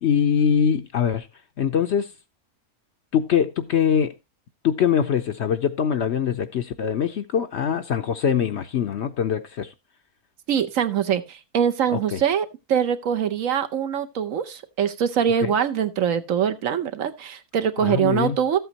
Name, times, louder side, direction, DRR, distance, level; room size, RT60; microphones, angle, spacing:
voice 1, 0.0-1.3 1.6-2.1 3.1-4.1 4.6-9.7 11.9-12.2 15.4-15.6 17.8-18.4, left 8 dB, 60° left, 0.8 m, -23 dB
voice 2, 10.5-18.6, right 8 dB, 65° right, 1.1 m, -23 dB
13.5 x 8.0 x 2.9 m
omnidirectional pair, 1.6 m